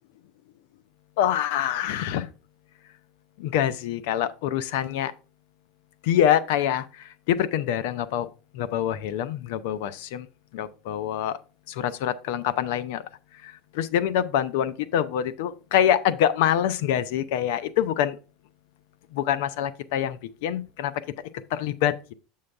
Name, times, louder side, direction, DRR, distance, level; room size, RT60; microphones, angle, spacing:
voice 1, 1.2-2.3 3.4-5.1 6.0-8.3 8.5-10.3 10.5-11.4 11.7-13.1 13.4-18.2 19.1-20.9 21.5-21.9, left 10 dB, 75° left, 0.7 m, -25 dB
7.6 x 5.7 x 3.4 m
hypercardioid pair, 95°, 0 cm